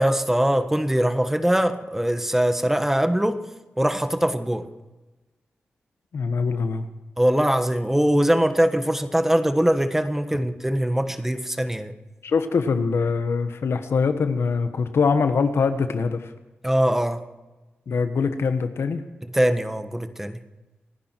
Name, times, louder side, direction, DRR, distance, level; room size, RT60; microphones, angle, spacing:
voice 1, 0.0-3.4 3.8-4.7 7.2-11.9 16.6-17.2 19.2-20.4, right 1 dB, 10° right, 9 dB, 1.4 m, -22 dB
voice 2, 6.1-6.9 12.2-16.3 17.9-19.0, left 5 dB, 75° left, 9 dB, 1.3 m, -23 dB
28.5 x 10.0 x 4.6 m, 1.1 s
cardioid pair, 70°, 4 cm